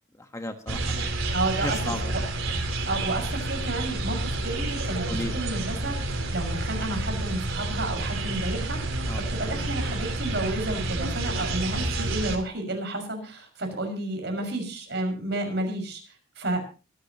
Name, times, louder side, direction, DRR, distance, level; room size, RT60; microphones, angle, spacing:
voice 1, 0.2-1.2 1.6-2.2 5.1-5.3 9.1-9.3, left 1 dB, 15° left, 6 dB, 1.3 m, -35 dB
sound 1, 0.7-12.4, right 2 dB, 90° right, 3.9 m, -29 dB
voice 2, 1.3-1.9 2.9-16.6, right 2 dB, 55° right, 4 dB, 5.9 m, -31 dB
25.5 x 11.5 x 3.0 m, 0.34 s
head